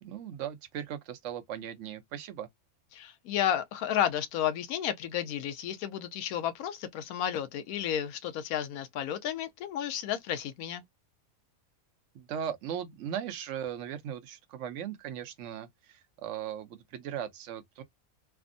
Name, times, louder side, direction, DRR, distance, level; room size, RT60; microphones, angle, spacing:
voice 1, 0.0-2.5 12.1-17.8, right 9 dB, 65° right, 0.9 m, -38 dB
voice 2, 2.9-10.8, left 10 dB, 90° left, 1.1 m, -32 dB
3.4 x 2.0 x 2.5 m
omnidirectional pair, 1.5 m